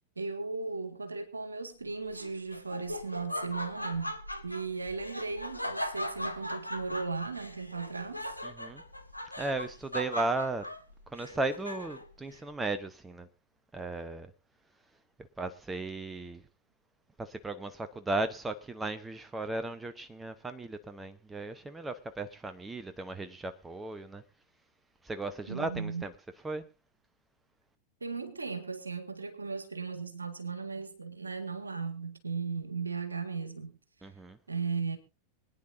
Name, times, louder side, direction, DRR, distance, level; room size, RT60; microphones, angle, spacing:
voice 1, 0.2-4.2 4.4-8.4 25.5-26.0 28.0-33.7 34.5-35.0, right 4 dB, 80° right, 1.8 m, -36 dB
Laughter, 2.1-12.1, left 1 dB, 90° left, 1.1 m, -39 dB
voice 2, 8.4-8.8 9.4-10.7 11.1-13.3 13.7-14.3 15.4-16.4 17.2-24.2 25.0-26.1 26.4-26.6 34.0-34.4, right 2 dB, 10° right, 1.0 m, -36 dB
24.5 x 9.7 x 2.7 m
figure-of-eight pair, 90°, 0 cm